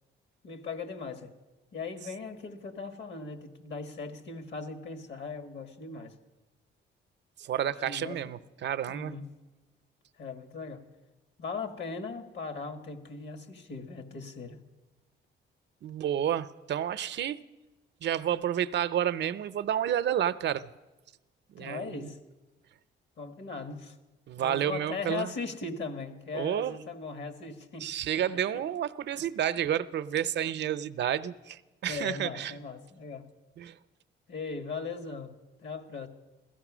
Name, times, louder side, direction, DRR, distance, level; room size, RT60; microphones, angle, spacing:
voice 1, 0.4-1.3 1.7-6.2 7.6-8.3 8.9-9.4 10.2-10.8 11.4-14.6 21.6-22.2 23.2-24.0 24.4-28.2 31.9-33.3 34.3-36.1, left 4 dB, 60° left, 9 dB, 1.6 m, -39 dB
voice 2, 7.4-9.2 15.8-17.4 18.0-20.7 21.5-22.1 24.3-25.3 26.3-26.8 27.8-32.6 33.6-33.8, right 10 dB, 60° right, 13 dB, 0.6 m, -30 dB
16.0 x 14.0 x 6.1 m, 1.1 s
cardioid pair, 90°, 20 cm